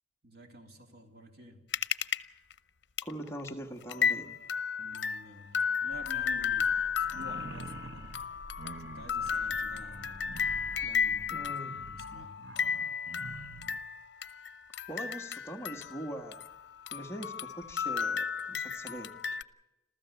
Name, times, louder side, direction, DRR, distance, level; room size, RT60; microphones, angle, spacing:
voice 1, 0.2-1.6 4.8-8.1 8.8-12.4, equal, 60° right, 3 dB, 3.1 m, -50 dB
sound 1, 1.7-2.2 2.5-2.6 3.0-3.1 3.4-3.5 3.9-16.6 16.9-19.4, left 7 dB, 80° left, 0.7 m, -33 dB
voice 2, 3.0-4.4 11.3-11.7 14.9-16.4 16.9-19.1, right 1 dB, 15° left, 2 dB, 1.6 m, -42 dB
sound 2, 5.9-11.5, equal, 5° right, 1.6 m, -51 dB
sound 3, 7.0-13.8, right 3 dB, 80° right, 0.9 m, -48 dB
27.0 x 15.0 x 7.0 m, 0.99 s
head